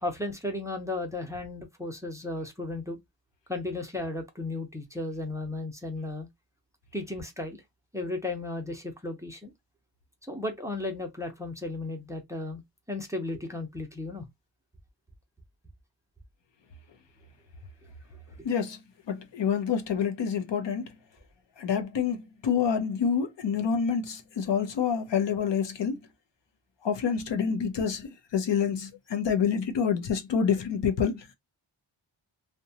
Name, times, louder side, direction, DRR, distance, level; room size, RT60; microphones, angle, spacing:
voice 1, 0.0-3.0 3.5-6.3 6.9-7.6 7.9-9.5 10.3-12.6 12.9-14.3, left 2 dB, 5° right, 0.6 m, -34 dB
voice 2, 18.4-18.8 19.1-20.9 21.6-26.0 26.8-31.2, left 7 dB, 70° left, 0.6 m, -27 dB
2.7 x 2.2 x 2.7 m
wide cardioid pair, 140°, 45 cm